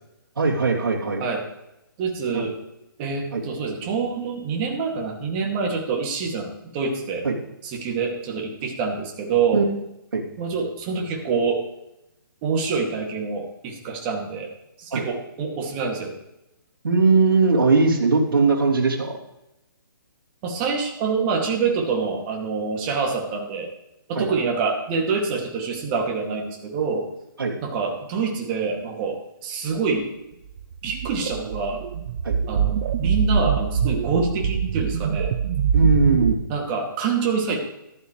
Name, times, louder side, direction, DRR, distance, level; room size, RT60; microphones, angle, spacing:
voice 1, 0.4-1.2 2.3-2.4 3.3-3.4 7.2-7.3 9.5-9.7 10.1-10.2 14.9-15.0 16.8-19.1 24.1-24.3 27.4-27.5 32.2-32.4 35.7-36.4, right 3 dB, 70° right, -2 dB, 3.1 m, -19 dB
voice 2, 2.0-2.6 3.0-7.2 7.6-9.6 10.4-11.6 12.4-14.5 14.8-16.1 20.4-23.7 24.1-27.0 27.6-30.1 30.8-31.8 32.5-35.3 36.5-37.6, right 5 dB, 25° right, 0 dB, 2.4 m, -26 dB
sound 1, 30.6-36.3, right 7 dB, 45° right, 0.9 m, -24 dB
14.0 x 12.0 x 3.3 m, 0.89 s
hypercardioid pair, 145°, 12 cm